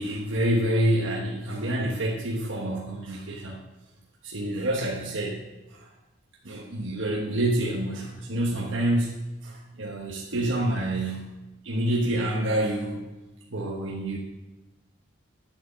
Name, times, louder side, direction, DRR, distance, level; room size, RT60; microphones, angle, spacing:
voice 1, 0.0-3.6 4.2-5.4 6.4-11.4 11.6-13.0 13.5-14.2, right 1 dB, 60° right, -2 dB, 1.3 m, -27 dB
8.5 x 8.0 x 7.6 m, 1.1 s
head